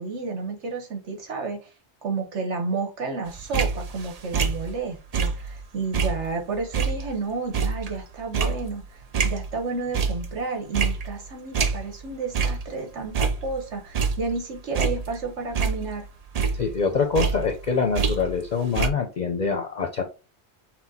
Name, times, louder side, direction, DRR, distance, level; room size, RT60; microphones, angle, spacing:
voice 1, 0.0-1.7 2.0-8.8 9.2-16.1, right 4 dB, 80° right, 3 dB, 1.5 m, -31 dB
sound 1, 3.3-5.6 5.9-9.6 9.9-10.4 10.7-12.1 12.3-12.7 13.0-14.4 14.7-16.1 16.3-18.5 18.7-18.9, right 5 dB, 50° right, 0.5 m, -27 dB
voice 2, 16.5-20.0, left 5 dB, 50° left, 5 dB, 0.6 m, -25 dB
6.0 x 2.2 x 4.0 m, 0.31 s
omnidirectional pair, 1.2 m